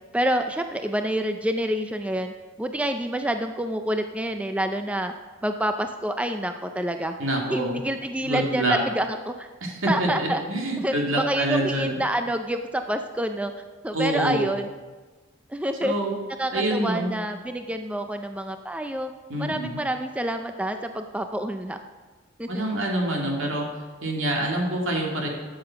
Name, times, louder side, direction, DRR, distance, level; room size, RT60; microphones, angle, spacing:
voice 1, 0.1-5.1 5.4-7.2 7.5-9.5 9.9-10.4 10.8-13.5 13.8-14.7 15.5-15.9 16.4-19.1 19.4-21.8 22.4-22.7, right 1 dB, 5° right, 6 dB, 0.4 m, -27 dB
voice 2, 7.2-7.8 8.2-8.8 9.6-11.9 13.9-14.5 15.8-16.1 16.5-17.1 19.3-19.8 22.5-23.7 24.0-25.3, right 1 dB, 70° right, 0 dB, 2.3 m, -26 dB
11.5 x 7.5 x 5.8 m, 1.3 s
head